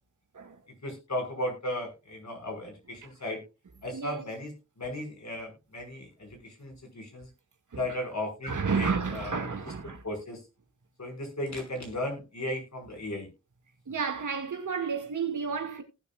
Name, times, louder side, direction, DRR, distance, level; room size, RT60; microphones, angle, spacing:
voice 1, 0.8-3.4 3.8-7.3 7.8-9.7 10.0-10.4 11.0-13.3, left 1 dB, 65° left, 5.8 m, -36 dB
voice 2, 3.9-4.2 8.4-10.0 13.9-15.8, right 5 dB, 85° right, 2.1 m, -31 dB
18.5 x 7.3 x 2.4 m
cardioid pair, 45°, 30 cm